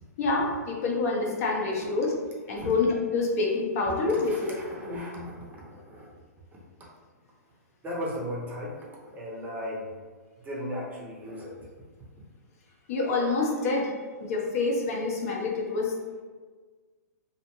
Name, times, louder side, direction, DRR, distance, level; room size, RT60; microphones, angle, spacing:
voice 1, 0.2-2.1 2.5-4.5 4.8-5.2 12.9-13.9 14.2-15.9, left 3 dB, 55° left, -1 dB, 0.6 m, -27 dB
voice 2, 4.1-6.1 6.5-6.6 7.8-9.9 10.4-11.6, equal, 20° right, -3 dB, 0.5 m, -37 dB
2.5 x 2.1 x 2.9 m, 1.4 s
hypercardioid pair, 125°, 9 cm